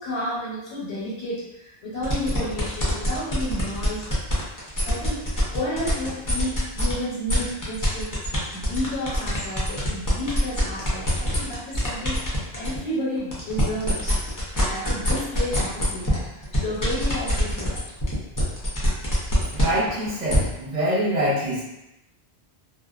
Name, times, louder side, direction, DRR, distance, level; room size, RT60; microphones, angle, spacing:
voice 1, 0.0-4.0 4.8-14.2 14.5-17.8, left 1 dB, 90° left, -9 dB, 1.0 m, -31 dB
sound 1, 2.0-6.9 7.3-12.8 13.2-20.4, equal, 25° left, 0.4 m, -25 dB
voice 2, 19.5-21.6, equal, 45° right, -8 dB, 0.9 m, -24 dB
2.4 x 2.2 x 2.3 m, 0.89 s
omnidirectional pair, 1.1 m